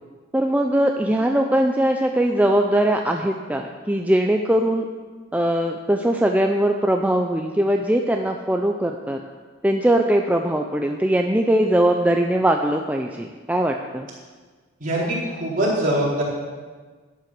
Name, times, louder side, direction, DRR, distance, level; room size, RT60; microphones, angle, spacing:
voice 1, 0.3-4.9 5.3-9.2 9.6-14.1, right 1 dB, 10° right, 3 dB, 0.5 m, -21 dB
voice 2, 14.8-16.2, right 1 dB, 45° right, -6 dB, 4.3 m, -23 dB
12.0 x 9.7 x 6.1 m, 1.4 s
head